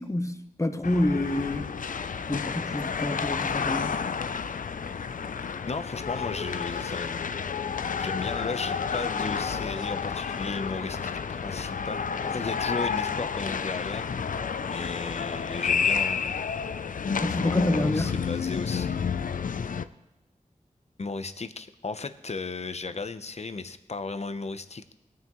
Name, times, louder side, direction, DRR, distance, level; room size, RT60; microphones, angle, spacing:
voice 1, 0.0-1.7 2.3-3.9 17.2-18.1, left 1 dB, 25° left, 7 dB, 1.0 m, -28 dB
sound 1, 0.8-19.8, left 6 dB, 85° left, 0.4 m, -30 dB
voice 2, 5.7-14.2 14.5-16.5 17.4-18.9 21.0-24.9, left 4 dB, 55° left, 11 dB, 0.7 m, -35 dB
20.0 x 9.4 x 3.1 m, 1.0 s
wide cardioid pair, 75°, 13 cm